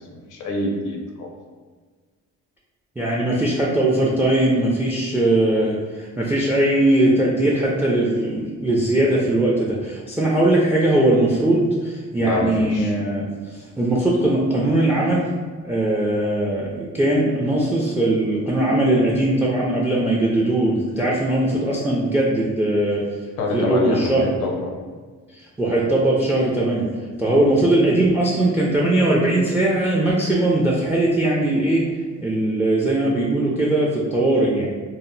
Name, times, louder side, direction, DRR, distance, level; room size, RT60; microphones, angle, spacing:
voice 1, 0.1-1.3 12.2-12.9 23.4-24.6 27.3-27.5, left 2 dB, 85° left, 1 dB, 0.6 m, -26 dB
voice 2, 3.0-15.3 15.6-23.2 23.5-24.3 25.3-26.9 27.2-31.8 32.2-34.7, right 1 dB, 5° right, -4 dB, 0.3 m, -20 dB
2.0 x 2.0 x 3.7 m, 1.5 s
cardioid pair, 90°, 30 cm